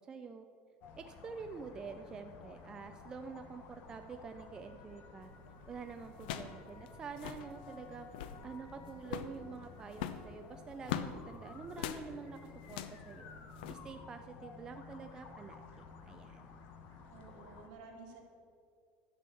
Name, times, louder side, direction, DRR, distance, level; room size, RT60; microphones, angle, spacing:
voice 1, 0.1-0.5 1.0-5.3 5.7-8.1 8.4-12.4 12.7-13.3 13.7-16.6, right 5 dB, 15° right, 6 dB, 0.3 m, -47 dB
sound 1, 0.8-17.7, left 4 dB, 45° left, 1.1 m, -53 dB
sound 2, 5.2-5.5 6.2-6.6 6.9-7.0 7.1-7.5 8.0-8.4 9.0-9.4 9.9-11.1 11.7-12.0 12.6-13.0 13.6-13.7, left 10 dB, 85° left, 0.7 m, -40 dB
voice 2, 17.1-18.2, right 4 dB, 70° right, -1 dB, 2.3 m, -52 dB
11.0 x 6.2 x 6.9 m, 2.3 s
cardioid pair, 175°, 5 cm